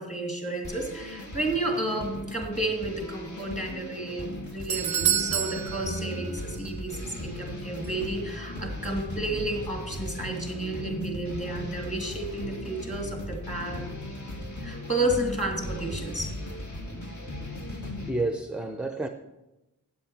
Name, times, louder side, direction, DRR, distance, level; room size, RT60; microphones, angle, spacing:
voice 1, 0.0-13.9 14.6-16.3, right 1 dB, 20° left, 2.6 m, -31 dB
sound 1, 0.6-18.1, left 1 dB, 55° left, 1.9 m, -37 dB
Doorbell, 4.2-6.7 7.0-7.1 7.8-7.9, right 10 dB, 90° right, 0.5 m, -29 dB
voice 2, 17.8-19.1, right 2 dB, 5° right, 0.5 m, -30 dB
8.4 x 7.8 x 5.9 m
wide cardioid pair, 65°, 35 cm